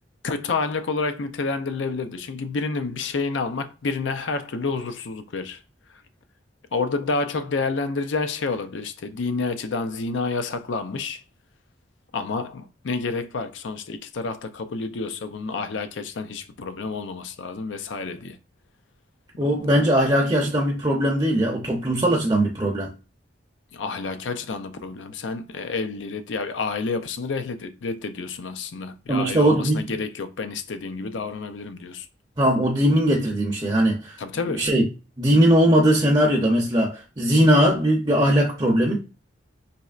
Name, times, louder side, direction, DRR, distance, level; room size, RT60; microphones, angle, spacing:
voice 1, 0.2-5.6 6.7-11.2 12.1-18.4 19.6-19.8 23.7-32.1 34.2-34.7, left 4 dB, 85° left, 0.5 m, -29 dB
voice 2, 19.4-22.9 29.1-29.8 32.4-34.2 34.5-34.9 35.2-39.0, right 1 dB, 25° right, 0.6 m, -20 dB
4.1 x 3.1 x 2.4 m
head